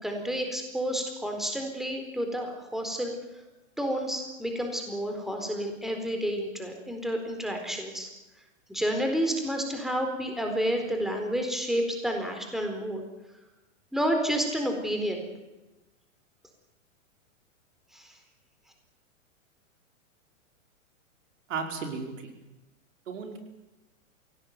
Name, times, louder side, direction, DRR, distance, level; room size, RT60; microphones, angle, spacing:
voice 1, 0.0-3.2 3.8-8.1 8.7-13.0 13.9-15.2 17.9-18.1, equal, ahead, 3 dB, 4.2 m, -30 dB
voice 2, 21.5-22.3 23.1-23.4, right 5 dB, 70° right, 5 dB, 5.2 m, -34 dB
24.0 x 17.5 x 9.4 m, 1.0 s
hypercardioid pair, 130°, 39 cm